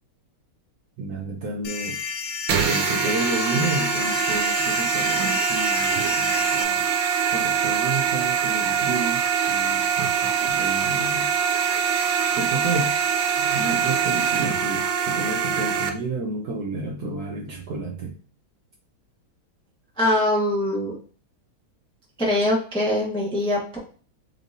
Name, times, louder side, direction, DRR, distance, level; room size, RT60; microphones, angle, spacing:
voice 1, 1.0-2.0 2.7-6.9 7.3-9.9 10.5-11.3 12.3-13.0 13.5-18.1, right 3 dB, 65° right, 0 dB, 1.0 m, -30 dB
sound 1, 1.6-6.6, left 5 dB, 80° left, 1.4 m, -30 dB
sound 2, 2.5-15.9, right 7 dB, 80° right, 1.4 m, -23 dB
voice 2, 20.0-21.0 22.2-23.8, left 1 dB, 5° left, -3 dB, 0.4 m, -23 dB
3.7 x 3.6 x 2.6 m, 0.41 s
omnidirectional pair, 2.3 m